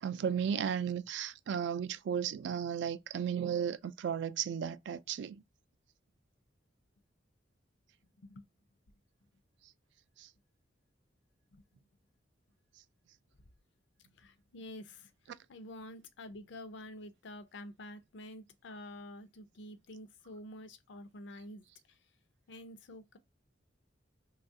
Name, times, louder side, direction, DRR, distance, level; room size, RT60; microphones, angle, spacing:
voice 1, 0.0-5.4 10.2-10.3, right 8 dB, 70° right, 0.3 m, -34 dB
voice 2, 14.2-22.0 22.5-23.2, left 1 dB, 70° left, 0.5 m, -49 dB
3.1 x 2.3 x 2.6 m
head